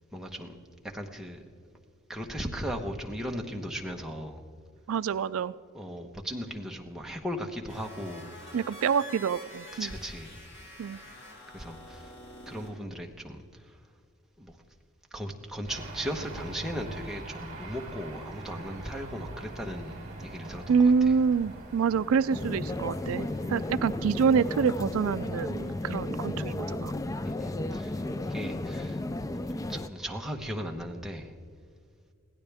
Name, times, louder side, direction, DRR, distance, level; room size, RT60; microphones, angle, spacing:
voice 1, 0.1-0.6 0.8-1.7 2.1-4.4 5.7-8.6 9.8-10.4 11.5-12.1 12.5-13.7 14.4-14.6 15.1-21.1 23.5-23.7 27.2-29.0 29.7-31.3, equal, ahead, 1 dB, 1.1 m, -37 dB
voice 2, 4.9-5.5 8.5-9.9 10.8-11.0 20.7-26.9, right 6 dB, 75° right, 15 dB, 0.3 m, -26 dB
sound 1, 7.7-12.7, left 1 dB, 85° left, 4.4 m, -47 dB
sound 2, 15.7-26.0, right 2 dB, 35° right, 3.8 m, -44 dB
sound 3, 22.3-29.9, left 2 dB, 15° left, 0.3 m, -34 dB
22.0 x 16.0 x 3.5 m, 2.1 s
head